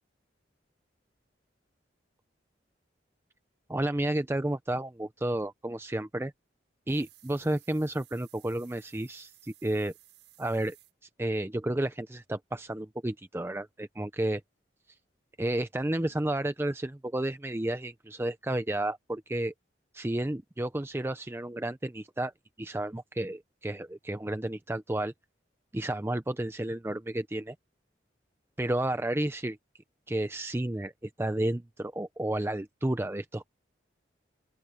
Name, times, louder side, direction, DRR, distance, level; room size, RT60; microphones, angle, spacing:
voice 1, 3.7-6.3 6.9-9.9 10.4-10.8 11.2-14.4 15.4-19.5 19.9-22.3 22.6-25.1 25.7-27.5 28.6-29.6 30.1-33.5, right 1 dB, 15° right, 0.5 m, -31 dB
sound 1, 6.9-10.9, right 16 dB, 75° right, 6.9 m, -58 dB
open air
head